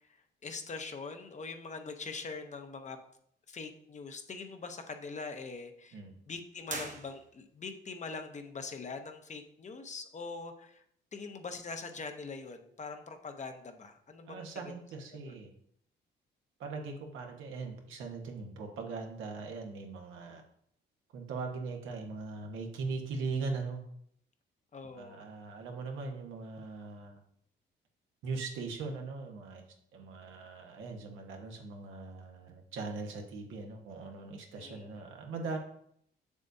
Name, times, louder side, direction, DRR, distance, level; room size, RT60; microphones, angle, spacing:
voice 1, 0.4-3.0 3.5-10.8 11.1-14.7 15.2-15.4 24.7-25.3 34.6-35.0, left 4 dB, 35° left, 6 dB, 0.8 m, -43 dB
sound 1, 6.6-7.7, right 4 dB, 40° right, 1.1 m, -42 dB
voice 2, 14.3-15.5 16.6-20.4 21.1-23.8 25.0-27.1 28.2-29.6 29.9-35.6, right 4 dB, 80° right, 2 dB, 1.3 m, -40 dB
7.1 x 6.6 x 2.7 m, 0.69 s
cardioid pair, 90°, 20 cm